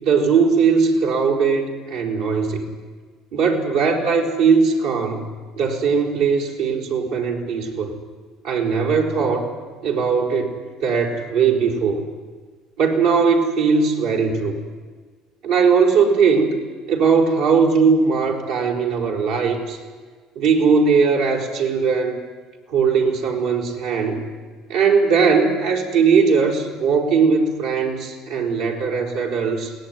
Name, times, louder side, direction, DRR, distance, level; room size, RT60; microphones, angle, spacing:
voice 1, 0.0-2.7 3.3-5.3 5.6-7.9 8.4-9.5 9.8-12.0 12.8-14.5 15.4-16.5 16.9-19.8 20.3-22.2 22.7-24.2 24.7-29.7, right 5 dB, 85° right, 0 dB, 4.7 m, -19 dB
22.0 x 18.0 x 9.8 m, 1.5 s
supercardioid pair, 100°, 0 cm